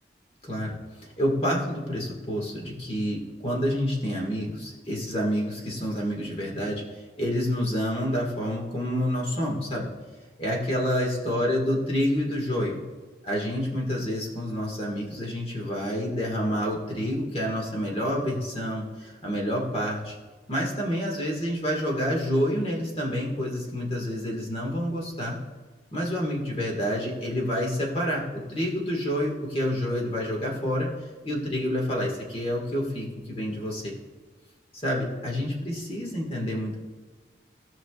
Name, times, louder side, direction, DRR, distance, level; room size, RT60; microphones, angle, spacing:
voice 1, 0.4-0.7 1.0-6.8 7.2-9.9 10.4-12.8 13.2-20.1 20.5-25.4 25.9-30.9 31.2-33.9 34.8-36.8, equal, 35° left, -1 dB, 1.8 m, -28 dB
16.0 x 5.8 x 2.4 m, 1.3 s
head